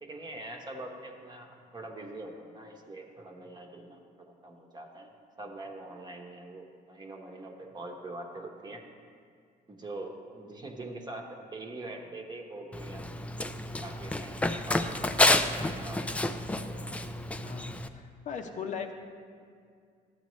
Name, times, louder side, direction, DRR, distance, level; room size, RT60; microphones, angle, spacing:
voice 1, 0.0-5.1 5.4-8.8 9.7-13.1 13.8-16.8, right 2 dB, 25° right, 2 dB, 1.0 m, -44 dB
Run, 12.7-17.9, left 1 dB, 10° left, 0.3 m, -29 dB
voice 2, 17.4-18.9, left 6 dB, 45° left, 4 dB, 0.7 m, -38 dB
13.0 x 8.2 x 3.1 m, 2.2 s
cardioid pair, 110°, 17 cm